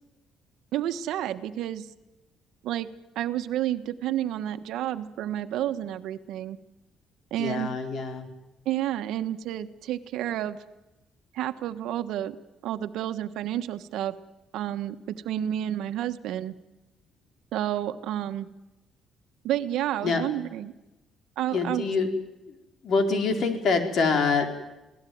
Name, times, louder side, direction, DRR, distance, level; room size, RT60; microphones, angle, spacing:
voice 1, 0.7-1.9 2.6-2.9 3.1-6.6 7.3-7.7 8.6-10.6 11.3-12.4 12.6-14.2 14.5-16.6 17.5-18.5 19.4-20.7 21.4-21.8, right 12 dB, 80° right, 10 dB, 1.3 m, -30 dB
voice 2, 7.4-8.3 20.0-20.3 21.5-22.1 22.5-22.6 22.8-24.5, left 4 dB, 60° left, 6 dB, 4.4 m, -25 dB
26.5 x 18.0 x 9.4 m, 1.0 s
cardioid pair, 95°, 0 cm